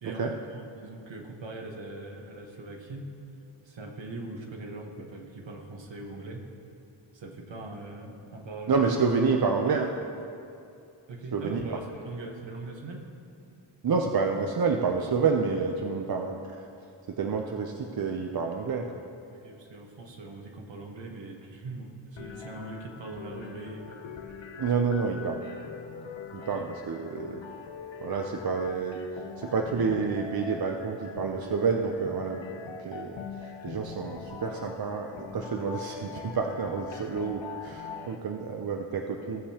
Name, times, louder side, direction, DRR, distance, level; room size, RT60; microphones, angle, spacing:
voice 1, 0.0-3.1 3.6-6.5 7.1-8.8 11.1-13.0 19.3-24.0 26.4-27.1, right 2 dB, 70° right, 1 dB, 1.3 m, -41 dB
voice 2, 8.7-9.9 11.3-11.8 13.8-16.6 17.1-18.9 24.6-25.5 26.3-27.4 28.0-29.0 29.4-32.6 32.8-39.4, right 5 dB, 50° right, 3 dB, 0.6 m, -29 dB
sound 1, 22.2-38.2, left 5 dB, 75° left, 0.8 m, -42 dB
17.5 x 6.6 x 2.9 m, 2.5 s
wide cardioid pair, 130°, 46 cm